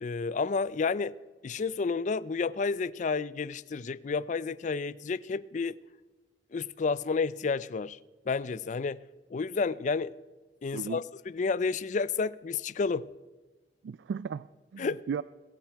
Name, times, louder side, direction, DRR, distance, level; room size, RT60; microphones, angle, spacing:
voice 1, 0.0-1.1 1.4-5.8 6.5-8.0 8.3-9.0 9.3-10.1 10.6-13.1 14.8-15.0, left 4 dB, 45° left, 0.4 m, -30 dB
voice 2, 10.7-11.0 13.8-15.2, right 6 dB, 85° right, 0.3 m, -36 dB
21.5 x 8.8 x 4.6 m
head